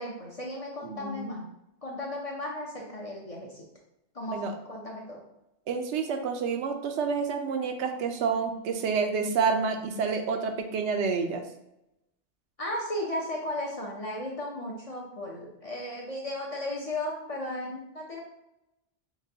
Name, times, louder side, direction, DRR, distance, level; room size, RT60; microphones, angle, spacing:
voice 1, 0.0-1.5 1.8-3.7 4.1-5.2 12.6-18.2, left 1 dB, 40° left, -2 dB, 0.6 m, -35 dB
voice 2, 0.8-1.3 4.3-4.5 5.7-11.4, right 5 dB, 80° right, 5 dB, 0.9 m, -29 dB
5.8 x 2.2 x 2.7 m, 0.87 s
omnidirectional pair, 1.2 m